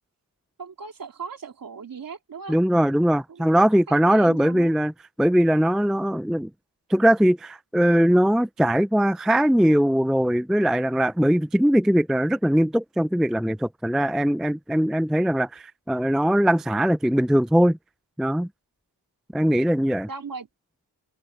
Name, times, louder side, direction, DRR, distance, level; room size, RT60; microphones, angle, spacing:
voice 1, 0.6-2.5 3.3-3.5 3.9-4.7 20.1-20.5, right 5 dB, 55° right, 3.1 m, -38 dB
voice 2, 2.5-4.9 5.2-6.5 6.9-17.8 18.2-18.5 19.3-20.1, equal, ahead, 0.3 m, -20 dB
open air
wide cardioid pair, 110°, 41 cm